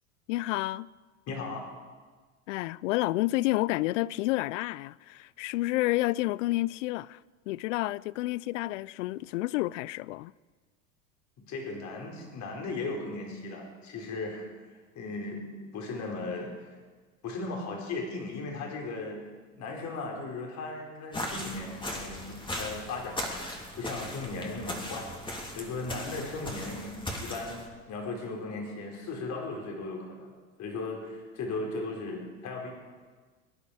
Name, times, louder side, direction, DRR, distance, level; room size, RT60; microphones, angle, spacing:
voice 1, 0.3-0.9 2.5-7.2 7.5-10.3, left 18 dB, 65° left, 0.5 m, -30 dB
voice 2, 1.3-1.7 11.5-14.5 14.9-15.5 15.7-16.7 17.2-19.2 19.5-25.1 25.5-27.6 27.9-30.3 30.6-32.7, left 3 dB, 45° left, 4.3 m, -37 dB
sound 1, 21.1-27.7, left 1 dB, 10° left, 2.9 m, -38 dB
23.0 x 10.5 x 4.9 m
hypercardioid pair, 90°, 40 cm